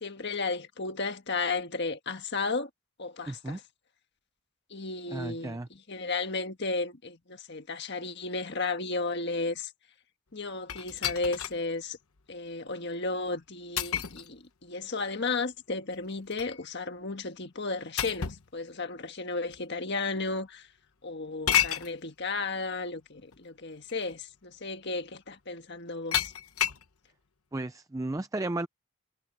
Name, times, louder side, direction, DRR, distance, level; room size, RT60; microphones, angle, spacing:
voice 1, 0.0-2.7 3.0-3.6 4.7-5.6 5.9-9.7 10.3-12.0 12.3-20.7 21.0-26.3, left 3 dB, 50° left, 1.6 m, -34 dB
voice 2, 3.3-3.6 5.1-5.7 27.5-28.7, right 2 dB, 15° right, 0.4 m, -34 dB
sound 1, 10.7-11.6 12.2-12.3 13.8-14.3 15.9-16.6 18.0-18.5 19.5-19.6 21.5-21.9 23.3-23.4 23.9-24.1 26.1-26.9, left 10 dB, 75° left, 1.0 m, -30 dB
head